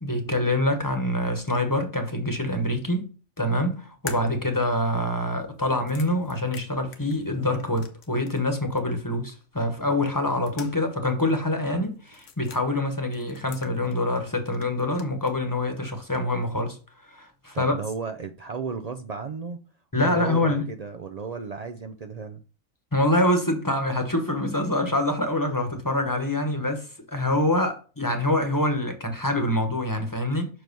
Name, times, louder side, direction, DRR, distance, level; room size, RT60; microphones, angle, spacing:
voice 1, 0.0-3.1 3.4-16.8 17.1-17.7 19.9-20.7 22.9-30.5, left 1 dB, 15° left, 1.0 m, -25 dB
sound 1, 4.1-8.5 8.8-8.9 10.0-11.0 11.3-11.4 12.1-12.6 13.1-14.2 14.5-15.4, left 6 dB, 65° left, 1.2 m, -44 dB
voice 2, 17.5-19.6 20.0-22.4, right 5 dB, 80° right, 0.3 m, -34 dB
6.0 x 4.8 x 5.3 m
omnidirectional pair, 1.4 m